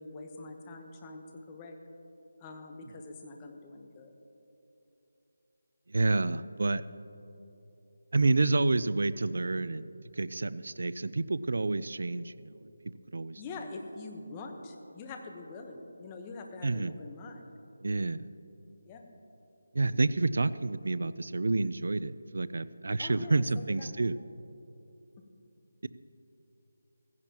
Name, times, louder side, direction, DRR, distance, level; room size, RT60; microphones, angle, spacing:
voice 1, 0.0-1.8 2.4-4.1 13.4-17.5 18.9-19.1 23.0-24.0 25.2-25.3, left 3 dB, 15° left, 3 dB, 1.0 m, -44 dB
voice 2, 5.9-6.8 8.1-9.8 10.1-12.7 13.1-13.4 16.6-17.0 17.8-18.3 19.7-24.2, right 3 dB, 65° right, 16 dB, 0.4 m, -29 dB
16.0 x 15.5 x 3.0 m, 2.9 s
figure-of-eight pair, 170°, 0 cm